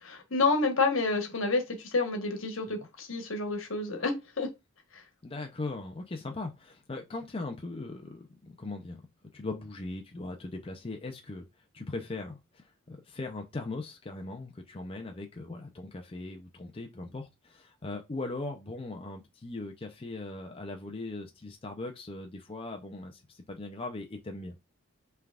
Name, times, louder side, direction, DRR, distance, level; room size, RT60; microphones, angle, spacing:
voice 1, 0.0-4.5, left 3 dB, 70° left, 1.2 m, -29 dB
voice 2, 5.2-9.0 9.3-11.5 11.7-24.6, left 2 dB, 30° left, 0.5 m, -39 dB
5.6 x 3.4 x 2.4 m
head